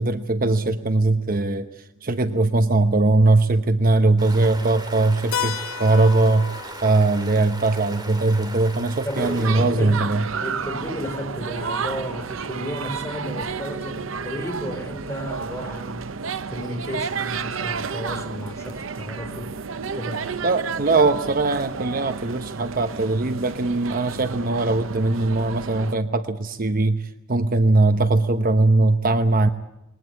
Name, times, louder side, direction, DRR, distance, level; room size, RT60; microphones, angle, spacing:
voice 1, 0.0-1.7 2.0-6.5 6.8-10.2 20.4-29.5, right 2 dB, 45° right, 10 dB, 0.9 m, -20 dB
Stream, 4.2-9.5, right 2 dB, 20° right, 3.2 m, -38 dB
Keyboard (musical), 5.3-9.8, left 9 dB, 85° left, 1.0 m, -35 dB
voice 2, 9.0-10.0 10.4-16.1 16.5-19.5 19.9-20.2, equal, 15° left, 4 dB, 5.0 m, -33 dB
sound 1, 9.1-25.9, right 5 dB, 85° right, 0.8 m, -31 dB
21.5 x 19.0 x 8.5 m, 0.91 s
head